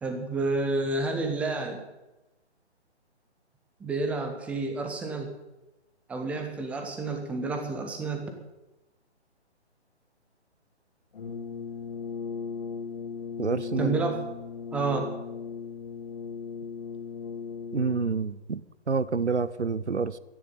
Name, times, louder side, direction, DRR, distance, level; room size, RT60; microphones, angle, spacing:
voice 1, 0.0-1.8 3.8-5.4 6.1-8.3 13.8-14.3 14.7-15.1, right 3 dB, 5° right, 4 dB, 0.9 m, -30 dB
Brass instrument, 11.1-18.3, left 6 dB, 45° left, 2.4 m, -37 dB
voice 2, 13.4-14.0 17.7-20.2, right 4 dB, 80° right, 17 dB, 0.9 m, -28 dB
13.5 x 10.5 x 8.8 m, 1.0 s
figure-of-eight pair, 140°, 34 cm